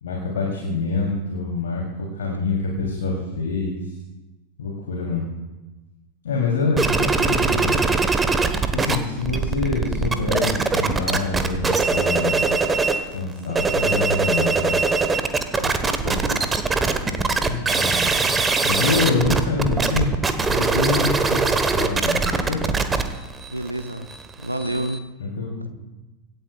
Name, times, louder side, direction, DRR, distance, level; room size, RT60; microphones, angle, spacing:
voice 1, 0.0-1.8 2.1-3.9 4.6-5.3 6.2-8.1 8.7-12.4 13.0-14.8 17.0-18.0 18.6-21.5 21.8-22.6 25.2-25.7, left 3 dB, 65° left, -1 dB, 3.3 m, -26 dB
sound 1, 6.8-9.0 9.2-13.0 13.4-25.0, right 4 dB, 15° right, 1.3 m, -22 dB
voice 2, 15.6-16.5 23.5-24.1 24.4-25.0, right 1 dB, 85° right, 8 dB, 0.8 m, -30 dB
25.5 x 12.5 x 2.4 m, 1.1 s
figure-of-eight pair, 90°, 0 cm